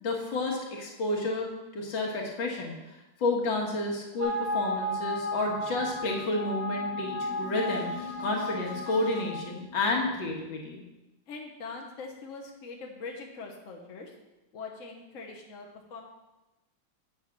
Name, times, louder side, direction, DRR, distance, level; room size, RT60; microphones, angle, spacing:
voice 1, 0.0-10.8, left 2 dB, 65° left, -1 dB, 2.3 m, -31 dB
sound 1, 4.2-9.4, left 1 dB, 20° right, 1.9 m, -34 dB
sound 2, 5.2-10.6, left 1 dB, 80° right, 2.8 m, -46 dB
voice 2, 11.3-14.1 14.5-16.0, left 4 dB, 45° left, 0 dB, 1.3 m, -42 dB
8.4 x 6.5 x 5.9 m, 1.0 s
omnidirectional pair, 2.2 m